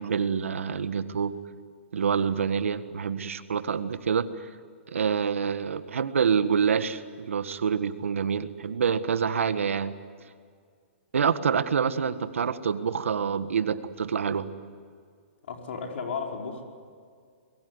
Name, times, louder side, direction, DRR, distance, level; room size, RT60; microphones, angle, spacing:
voice 1, 0.0-1.3 1.9-4.5 4.9-9.9 11.1-14.5, right 6 dB, 90° right, 11 dB, 1.7 m, -27 dB
voice 2, 15.5-16.6, left 5 dB, 65° left, 2 dB, 5.2 m, -34 dB
25.0 x 22.5 x 9.8 m, 2.1 s
hypercardioid pair, 150°, 7 cm